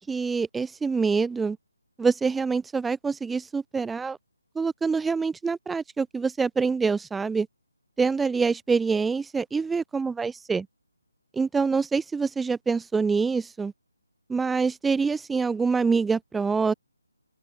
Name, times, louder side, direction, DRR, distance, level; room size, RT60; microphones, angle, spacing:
voice 1, 0.1-1.6 2.0-4.2 4.6-7.5 8.0-10.7 11.3-13.7 14.3-16.7, right 4 dB, 5° right, 0.6 m, -25 dB
open air
figure-of-eight pair, 150°, 0 cm